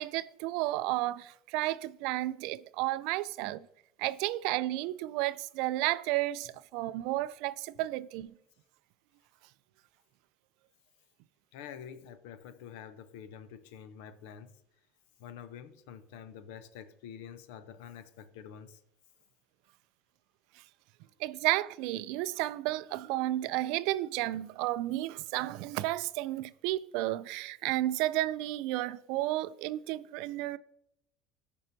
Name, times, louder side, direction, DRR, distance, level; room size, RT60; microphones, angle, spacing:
voice 1, 0.0-3.7 4.0-8.3 21.2-30.6, right 16 dB, 70° right, 0.3 m, -32 dB
voice 2, 11.5-14.6 15.2-18.8, left 8 dB, 85° left, 0.6 m, -47 dB
15.0 x 5.4 x 2.7 m
cardioid pair, 135°, 0 cm